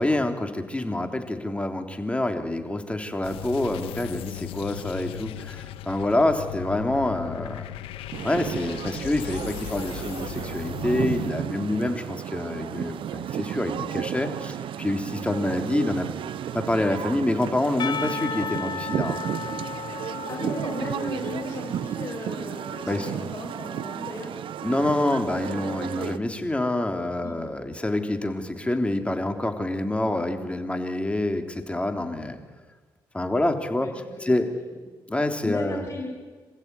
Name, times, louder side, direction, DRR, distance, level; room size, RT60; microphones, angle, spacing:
voice 1, 0.0-7.7 8.2-16.1 16.5-19.2 22.9-23.1 24.6-32.4 33.1-33.9 34.2-34.5 35.1-35.9, left 1 dB, 15° left, 6 dB, 3.3 m, -27 dB
sound 1, 3.2-11.3, left 14 dB, 85° left, 1.1 m, -37 dB
sound 2, 8.1-26.2, right 9 dB, 70° right, 1.0 m, -33 dB
Percussion / Church bell, 17.8-22.8, left 6 dB, 55° left, 1.3 m, -35 dB
voice 2, 19.9-24.3 27.2-27.4 33.8-34.4 35.4-36.1, left 2 dB, 35° left, -2 dB, 7.2 m, -36 dB
26.5 x 15.5 x 9.6 m, 1.4 s
cardioid pair, 75°, 9 cm